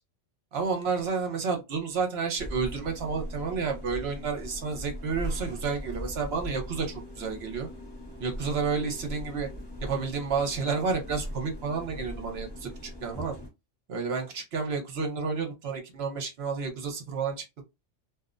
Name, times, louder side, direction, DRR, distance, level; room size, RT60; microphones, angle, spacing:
voice 1, 0.5-7.7 8.2-9.5 9.8-13.4 13.9-17.6, right 5 dB, 55° right, 1.0 m, -31 dB
sound 1, 2.4-13.5, equal, 25° left, 0.7 m, -40 dB
2.6 x 2.0 x 2.4 m
omnidirectional pair, 1.3 m